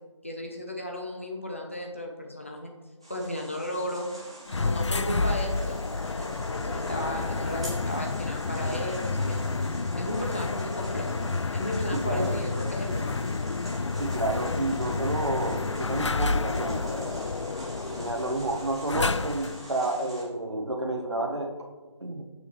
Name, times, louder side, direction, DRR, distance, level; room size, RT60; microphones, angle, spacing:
voice 1, 0.2-2.7 3.1-4.1 4.5-9.5 10.0-11.2 11.5-13.2, equal, 25° left, 1 dB, 0.8 m, -35 dB
sound 1, 3.0-20.2, equal, 10° right, 0.8 m, -45 dB
sound 2, 4.5-19.7, left 3 dB, 70° left, 0.4 m, -30 dB
voice 2, 11.9-12.4 14.0-17.3 17.9-21.5 22.0-22.2, right 2 dB, 60° right, 2 dB, 1.5 m, -30 dB
9.6 x 6.9 x 3.2 m, 1.2 s
figure-of-eight pair, 175°, 16 cm